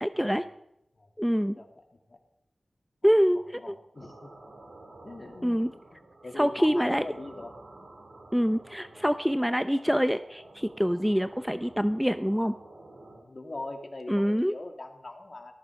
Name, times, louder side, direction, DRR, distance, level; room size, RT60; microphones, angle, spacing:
voice 1, 0.0-0.5 1.2-1.6 3.0-3.7 5.4-5.7 6.4-7.0 8.3-12.5 14.1-14.5, equal, ahead, 10 dB, 0.6 m, -25 dB
voice 2, 3.0-4.3 5.0-5.6 5.9-7.5 13.0-15.5, left 2 dB, 45° left, 3 dB, 2.7 m, -42 dB
sound 1, 4.0-13.2, right 2 dB, 85° right, 5.3 m, -50 dB
18.5 x 14.0 x 4.8 m, 0.82 s
wide cardioid pair, 70°, 0 cm